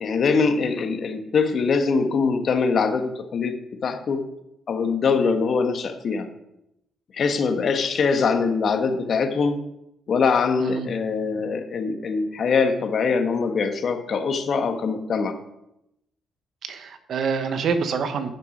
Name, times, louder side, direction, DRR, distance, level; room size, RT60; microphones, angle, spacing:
voice 1, 0.0-3.6 3.8-4.2 4.7-6.3 7.1-9.6 10.1-15.4, left 5 dB, 55° left, 7 dB, 1.3 m, -23 dB
voice 2, 10.6-10.9 16.7-18.3, right 5 dB, 65° right, 9 dB, 1.1 m, -26 dB
10.5 x 6.0 x 5.2 m, 0.83 s
cardioid pair, 90°, 0 cm